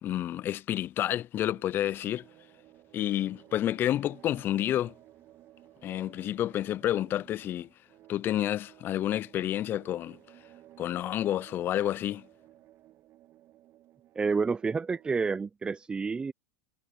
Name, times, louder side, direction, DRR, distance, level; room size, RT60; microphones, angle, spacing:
voice 1, 0.0-2.2 2.9-4.9 5.8-7.7 8.1-10.2 10.8-12.2, left 12 dB, 35° left, 0.5 m, -29 dB
sound 1, 1.5-15.3, right 14 dB, 45° right, 1.7 m, -56 dB
voice 2, 14.2-16.3, right 4 dB, 15° right, 0.6 m, -29 dB
hypercardioid pair, 100°, 6 cm